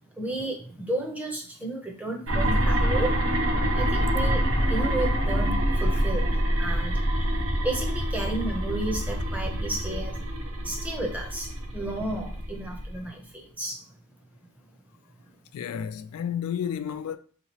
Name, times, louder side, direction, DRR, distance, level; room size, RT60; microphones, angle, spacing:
voice 1, 0.1-3.2 3.7-7.0 7.6-10.3 10.6-13.8, right 1 dB, 5° right, 0.6 m, -33 dB
sound 1, 2.3-13.0, equal, 65° right, 0.7 m, -26 dB
voice 2, 15.5-17.2, left 8 dB, 85° left, 0.3 m, -31 dB
3.6 x 2.9 x 2.8 m
head